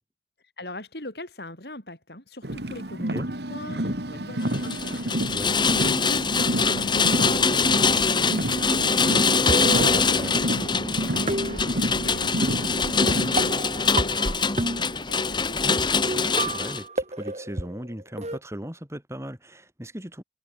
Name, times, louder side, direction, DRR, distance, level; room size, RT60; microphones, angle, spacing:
voice 1, 0.6-15.7, left 1 dB, 65° left, 7.7 m, -41 dB
Car, 2.4-13.5, right 1 dB, 70° right, 3.0 m, -30 dB
Rain, 4.5-16.8, left 4 dB, 25° left, 1.8 m, -23 dB
sound 1, 9.3-10.7 11.3-12.2 13.1-15.2 15.8-15.9 16.1-18.4, right 2 dB, 40° right, 4.2 m, -30 dB
voice 2, 9.8-10.6 15.6-15.8 16.1-20.2, equal, 15° right, 4.8 m, -37 dB
head